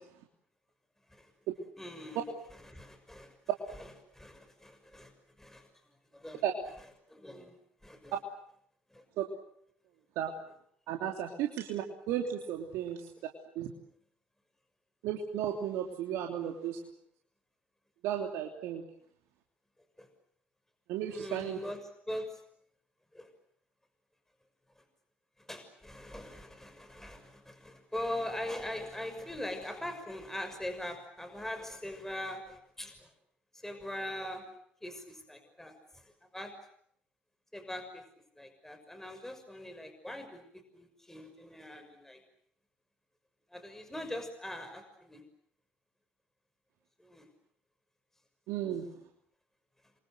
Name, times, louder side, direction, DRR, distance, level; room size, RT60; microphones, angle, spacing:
voice 1, 1.8-2.2 2.6-3.3 3.8-5.7 6.1-6.4 7.1-7.5 7.8-8.1 8.9-9.0 20.0-20.1 21.1-21.8 22.1-22.4 23.1-23.3 24.8-24.9 25.4-33.1 33.5-34.5 34.8-36.5 37.5-38.0 38.4-42.2 43.5-45.2 47.0-47.3, left 1 dB, 10° left, 8 dB, 6.2 m, -42 dB
voice 2, 10.9-13.1 13.5-13.7 15.0-16.8 18.0-18.8 20.9-21.6 48.5-48.9, right 10 dB, 70° right, 2 dB, 3.1 m, -34 dB
28.5 x 25.0 x 7.9 m, 0.70 s
hypercardioid pair, 60°, 5 cm